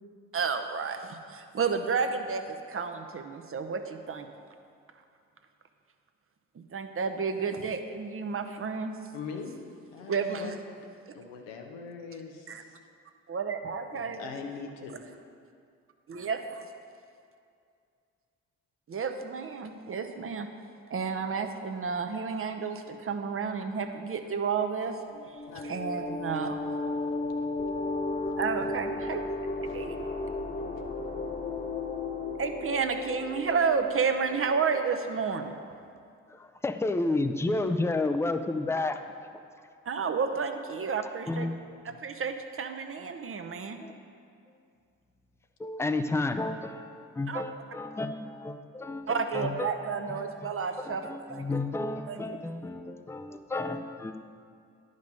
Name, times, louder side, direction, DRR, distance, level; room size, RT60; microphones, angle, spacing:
voice 1, 0.3-4.3 6.6-8.9 10.1-10.5 12.5-12.6 13.3-14.2 16.1-16.7 18.9-20.5 20.9-24.9 25.7-26.6 28.4-29.2 29.7-29.9 32.4-35.5 39.9-41.5 41.8-43.8 47.3-47.4 49.1-51.5 52.1-52.4, right 5 dB, 35° right, 7 dB, 0.8 m, -31 dB
voice 2, 9.1-9.5 9.9-10.6 11.1-12.8 13.9-15.0 25.4-25.7 26.7-27.5 28.2-28.7 29.6-29.8, left 5 dB, 80° left, 3 dB, 0.9 m, -42 dB
sound 1, 25.1-35.3, left 3 dB, 25° left, 0.9 m, -34 dB
voice 3, 36.3-39.1 41.3-41.6 43.8-44.0 45.6-50.5 50.8-54.2, left 2 dB, 5° left, 8 dB, 0.5 m, -32 dB
10.5 x 5.3 x 5.3 m, 2.4 s
hypercardioid pair, 45°, 36 cm